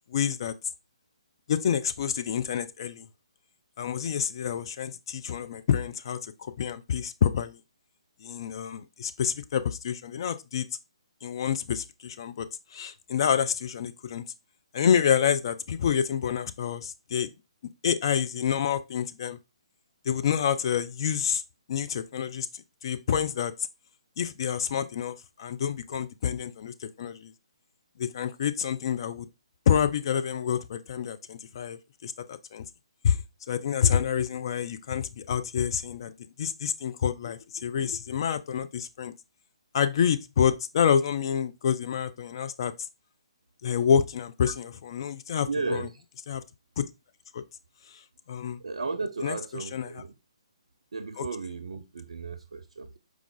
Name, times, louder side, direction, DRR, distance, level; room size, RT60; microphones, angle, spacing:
voice 1, 0.1-0.5 1.5-3.1 3.8-7.6 8.2-10.7 11.2-14.2 14.7-17.3 17.8-19.4 20.1-21.4 21.7-23.5 24.2-27.3 28.0-29.3 29.7-32.6 33.0-33.2 33.5-39.1 39.7-42.7 43.6-45.9 46.3-46.4 46.8-46.9 47.3-47.4 47.9-48.0 48.3-48.6 49.2-49.4 49.7-49.9 51.2-51.3, left 8 dB, 50° left, 0.4 m, -28 dB
voice 2, 45.5-46.0 48.6-50.1 50.9-53.0, right 4 dB, 70° right, 0.4 m, -34 dB
4.7 x 2.4 x 3.8 m
figure-of-eight pair, 140°, 3 cm